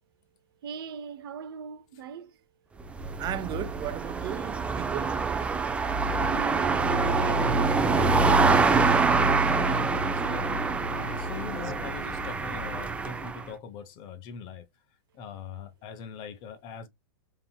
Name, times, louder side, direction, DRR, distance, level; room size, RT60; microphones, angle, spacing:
voice 1, 0.6-2.3 6.3-8.7, right 7 dB, 65° right, 0.6 m, -40 dB
sound 1, 2.8-13.4, right 3 dB, 10° right, 0.5 m, -25 dB
voice 2, 3.2-5.2 11.6-11.7, right 12 dB, 30° right, 0.9 m, -36 dB
voice 3, 6.5-6.9 9.4-14.7 15.1-16.9, left 6 dB, 40° left, 0.8 m, -41 dB
3.9 x 2.9 x 2.3 m
hypercardioid pair, 110°, 13 cm